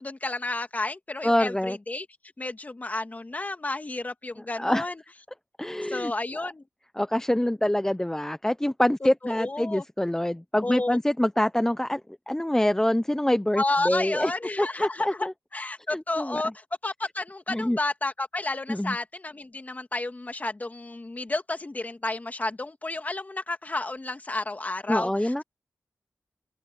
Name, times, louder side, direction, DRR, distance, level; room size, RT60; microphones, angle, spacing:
voice 1, 0.0-2.1 2.4-5.0 5.8-6.6 9.2-9.8 10.6-11.0 13.6-25.4, left 2 dB, 30° left, 2.4 m, -31 dB
voice 2, 1.2-1.8 4.6-4.9 5.6-6.5 7.0-12.0 12.3-14.3 14.6-15.3 15.9-16.4 17.5-17.8 18.7-19.0 24.9-25.4, left 1 dB, 10° left, 0.9 m, -25 dB
open air
cardioid pair, 65°, 5 cm